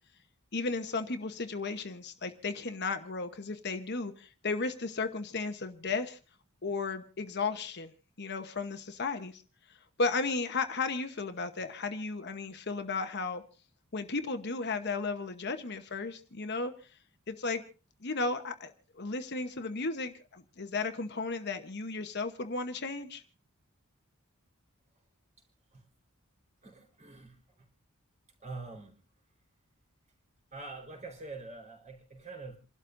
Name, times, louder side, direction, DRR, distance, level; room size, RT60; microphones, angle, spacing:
voice 1, 0.5-6.2 6.6-7.9 8.2-9.4 10.0-13.4 13.9-16.7 17.3-17.6 18.0-23.2, left 3 dB, 50° left, 8 dB, 1.0 m, -34 dB
voice 2, 26.6-27.4 28.4-29.0 30.5-32.6, right 3 dB, 35° right, 2 dB, 4.3 m, -45 dB
28.5 x 12.5 x 2.6 m, 0.35 s
head